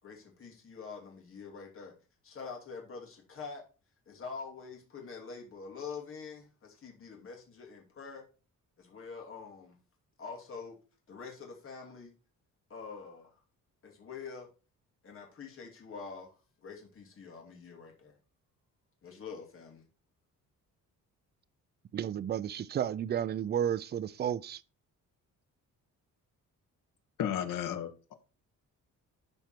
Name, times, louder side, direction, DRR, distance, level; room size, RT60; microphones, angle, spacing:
voice 1, 0.0-1.9 2.2-3.6 4.1-8.2 8.8-9.8 10.2-10.7 11.1-12.1 12.7-13.4 13.8-14.5 15.0-16.4 16.6-18.1 19.0-19.8, left 5 dB, 40° left, 2.8 m, -45 dB
voice 2, 21.9-24.6, right 9 dB, 30° right, 0.4 m, -32 dB
voice 3, 27.2-28.1, left 9 dB, 80° left, 1.4 m, -34 dB
12.0 x 4.5 x 4.5 m
cardioid pair, 170°, 32 cm